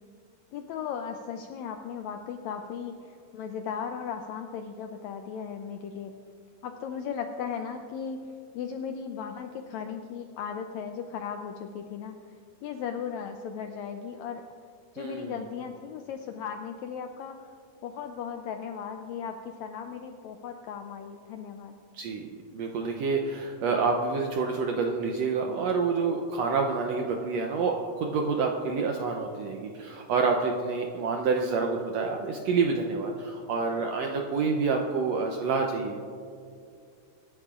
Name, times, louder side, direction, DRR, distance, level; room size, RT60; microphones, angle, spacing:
voice 1, 0.5-6.1 6.6-12.2 12.6-14.4 14.9-17.5 17.8-21.7, left 7 dB, 85° left, 5 dB, 1.6 m, -37 dB
voice 2, 15.0-15.3 21.9-36.0, right 4 dB, 80° right, 2 dB, 1.5 m, -28 dB
23.0 x 10.5 x 2.5 m, 2.4 s
omnidirectional pair, 3.8 m